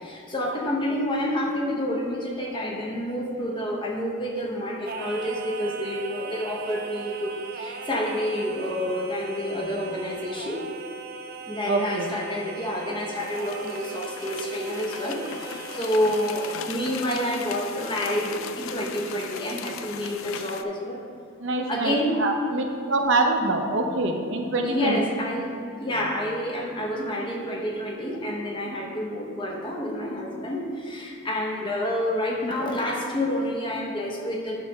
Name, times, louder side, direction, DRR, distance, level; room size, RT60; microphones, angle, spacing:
voice 1, 0.0-10.6 11.5-21.0 21.7-22.2 24.6-25.5 25.8-34.6, equal, 20° left, -1 dB, 0.9 m, -28 dB
Singing, 4.8-16.9, right 4 dB, 45° right, 0.4 m, -39 dB
voice 2, 11.6-12.1 21.4-25.0, right 2 dB, 65° right, 3 dB, 0.8 m, -25 dB
sound 1, 13.1-20.6, left 7 dB, 75° left, 0.4 m, -38 dB
9.4 x 3.3 x 6.0 m, 2.5 s
head